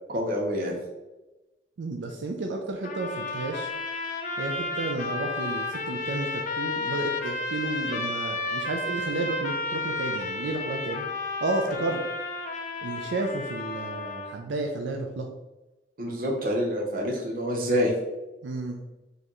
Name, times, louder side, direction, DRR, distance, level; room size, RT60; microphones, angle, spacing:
voice 1, 0.1-0.8 16.0-17.9, equal, 50° right, 0 dB, 0.8 m, -27 dB
voice 2, 1.8-3.7 4.4-11.0 11.4-12.0 12.8-15.3 18.4-18.8, right 2 dB, 85° right, 3 dB, 0.4 m, -32 dB
sound 1, 2.8-14.4, left 3 dB, 45° left, 0.5 m, -32 dB
4.5 x 3.3 x 3.0 m, 1.1 s
head